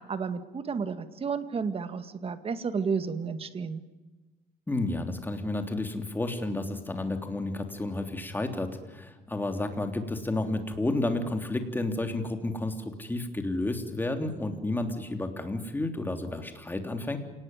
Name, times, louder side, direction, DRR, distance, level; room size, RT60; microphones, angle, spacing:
voice 1, 0.1-3.8, right 5 dB, 35° right, 10 dB, 2.0 m, -32 dB
voice 2, 4.7-17.2, left 2 dB, 10° left, 6 dB, 3.4 m, -31 dB
28.0 x 19.0 x 9.3 m, 1.2 s
cardioid pair, 110°, 17 cm